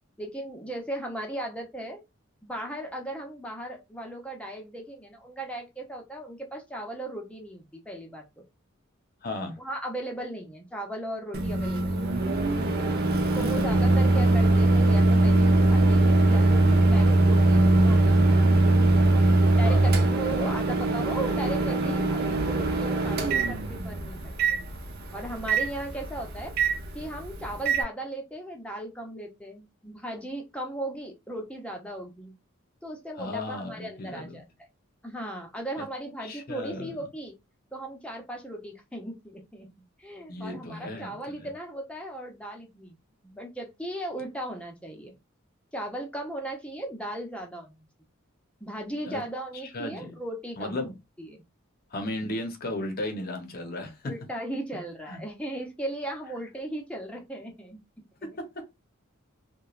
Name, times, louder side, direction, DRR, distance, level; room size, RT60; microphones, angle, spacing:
voice 1, 0.2-2.0 2.4-8.2 9.6-12.0 13.3-18.7 19.5-24.3 25.1-26.5 26.9-32.3 32.8-34.4 35.0-37.3 37.7-39.7 40.0-43.0 43.2-45.1 45.7-47.9 48.6-50.9 51.2-51.4 54.0-57.8, right 1 dB, 5° left, 0.7 m, -37 dB
voice 2, 9.2-9.6 13.4-13.7 19.6-19.9 33.2-34.4 35.8-35.9 36.2-36.9 40.3-41.2 49.0-49.2 49.7-50.2 50.6-50.9 51.9-54.1 55.1-55.2 58.2-58.6, left 1 dB, 45° left, 0.7 m, -35 dB
Microwave oven, 11.3-27.8, right 2 dB, 50° right, 0.5 m, -22 dB
3.0 x 2.2 x 2.3 m
head